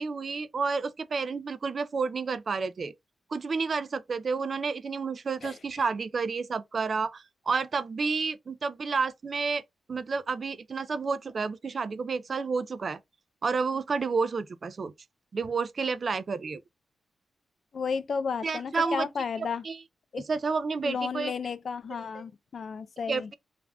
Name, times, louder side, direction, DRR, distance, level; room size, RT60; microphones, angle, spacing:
voice 1, 0.0-2.9 3.3-9.6 9.9-13.0 13.4-14.9 15.3-16.6 18.4-19.1 19.4-19.8 20.3-21.3 23.1-23.3, right 4 dB, 45° right, 0.3 m, -30 dB
voice 2, 17.7-19.6 20.1-20.3 20.8-23.3, left 5 dB, 55° left, 0.3 m, -33 dB
2.5 x 2.2 x 3.3 m
wide cardioid pair, 130°, 0 cm